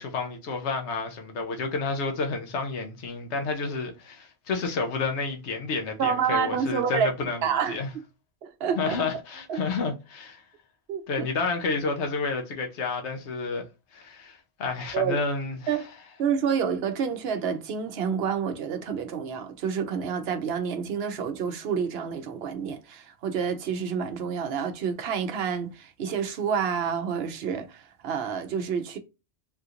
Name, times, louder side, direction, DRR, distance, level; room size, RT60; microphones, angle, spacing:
voice 1, 0.0-7.9 8.8-10.4 11.1-13.6 13.9-15.7, left 4 dB, 90° left, 1.1 m, -30 dB
voice 2, 6.0-7.1 7.4-7.8 8.4-9.0 9.5-9.6 10.9-11.3 14.9-15.2 15.7-15.9 16.2-29.0, right 7 dB, 70° right, 0.8 m, -28 dB
3.5 x 2.5 x 2.8 m
omnidirectional pair, 1.1 m